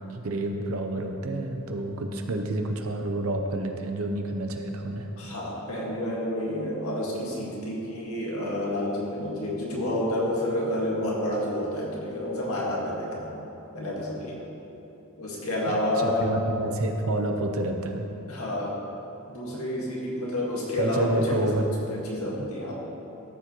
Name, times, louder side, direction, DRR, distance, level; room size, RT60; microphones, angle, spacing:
voice 1, 0.0-5.1 15.7-18.0 20.8-21.7 22.4-22.7, right 1 dB, 80° right, 4 dB, 0.8 m, -29 dB
voice 2, 5.2-13.3 13.7-14.4 15.2-16.3 18.3-18.8 19.3-22.7, left 1 dB, 90° left, -4 dB, 1.9 m, -29 dB
13.5 x 7.2 x 3.1 m, 2.9 s
head